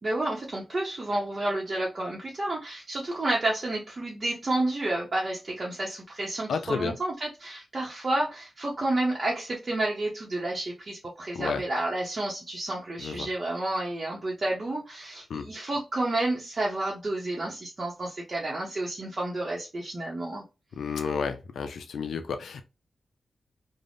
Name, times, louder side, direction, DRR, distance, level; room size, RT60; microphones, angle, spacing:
voice 1, 0.0-20.4, right 2 dB, 40° right, 0.7 m, -30 dB
voice 2, 6.5-7.0 11.3-11.6 13.0-13.3 15.3-15.5 20.8-22.6, left 6 dB, 90° left, 0.3 m, -31 dB
2.5 x 2.0 x 3.3 m
wide cardioid pair, 85°, 0 cm